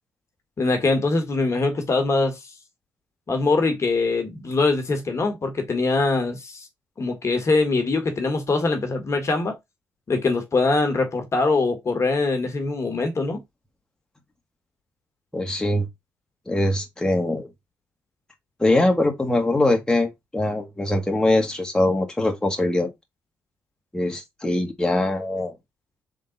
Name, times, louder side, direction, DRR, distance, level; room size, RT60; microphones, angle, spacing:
voice 1, 0.6-2.4 3.3-6.7 7.0-9.5 10.1-13.4, left 3 dB, 45° left, 1.4 m, -23 dB
voice 2, 15.3-15.9 16.5-17.5 18.6-22.9 23.9-25.5, left 1 dB, 10° left, 1.5 m, -22 dB
3.7 x 3.7 x 3.9 m
supercardioid pair, 55°, 7 cm